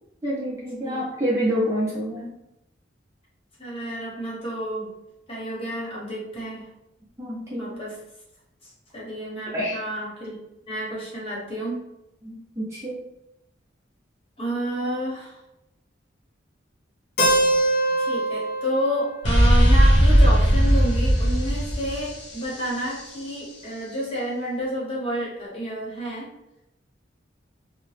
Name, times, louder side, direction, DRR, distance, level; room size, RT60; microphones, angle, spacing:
voice 1, 0.2-2.4 7.2-7.7 9.5-9.8 12.2-13.0, equal, 15° right, -7 dB, 0.5 m, -27 dB
voice 2, 3.6-4.9 5.3-6.7 7.6-7.9 8.6-10.4 10.7-11.8 14.4-15.4 18.0-26.3, equal, 30° left, -6 dB, 1.0 m, -30 dB
Keyboard (musical), 17.2-21.1, right 1 dB, 50° left, 0.5 m, -25 dB
sound 1, 19.2-23.0, equal, 70° left, 0.9 m, -18 dB
2.8 x 2.0 x 3.3 m, 0.90 s
head